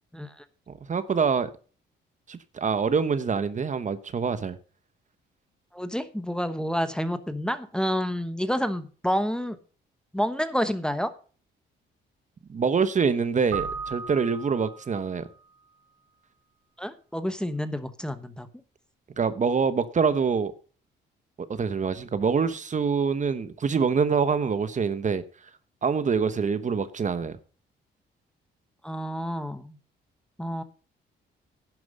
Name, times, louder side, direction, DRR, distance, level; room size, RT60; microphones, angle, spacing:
voice 1, 0.9-1.5 2.3-4.6 12.5-15.3 19.2-20.5 21.4-25.2 25.8-27.4, right 5 dB, 40° right, 1.0 m, -25 dB
voice 2, 5.7-9.6 10.1-11.1 16.8-18.5 28.8-29.8 30.4-30.6, equal, 5° left, 1.0 m, -29 dB
Keyboard (musical), 13.5-15.3, right 6 dB, 70° right, 4.1 m, -36 dB
11.0 x 7.8 x 5.1 m
cardioid pair, 90°, 20 cm